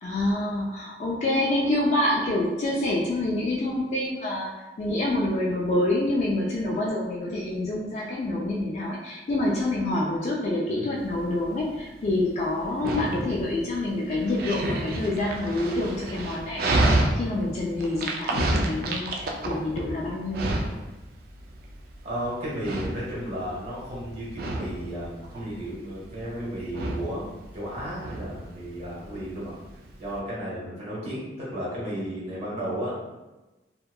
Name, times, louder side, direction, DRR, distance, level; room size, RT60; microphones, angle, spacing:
voice 1, 0.0-4.5 4.8-20.6, left 1 dB, 40° left, -4 dB, 0.3 m, -27 dB
Dog, 11.0-30.2, right 1 dB, 55° right, 0.3 m, -30 dB
voice 2, 22.0-29.6 30.0-32.9, equal, 40° right, -7 dB, 1.1 m, -34 dB
2.7 x 2.1 x 2.2 m, 1.1 s
head